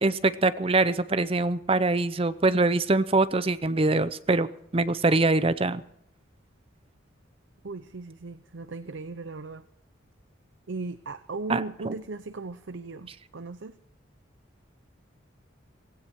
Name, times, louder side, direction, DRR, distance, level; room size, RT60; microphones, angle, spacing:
voice 1, 0.0-5.8 11.5-11.9, right 2 dB, 30° right, 14 dB, 0.6 m, -24 dB
voice 2, 7.6-9.6 10.7-13.8, right 3 dB, 65° right, 12 dB, 0.7 m, -37 dB
17.0 x 16.5 x 4.6 m, 0.75 s
head